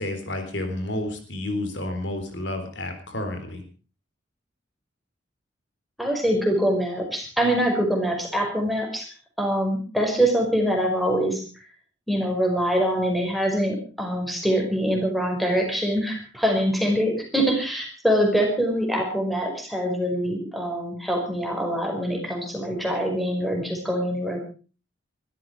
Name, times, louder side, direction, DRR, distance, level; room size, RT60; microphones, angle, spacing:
voice 1, 0.0-3.6, left 1 dB, 65° left, 6 dB, 3.9 m, -30 dB
voice 2, 6.0-9.1 9.4-11.4 12.1-24.4, equal, ahead, 1 dB, 5.3 m, -24 dB
22.5 x 13.5 x 4.9 m, 0.38 s
head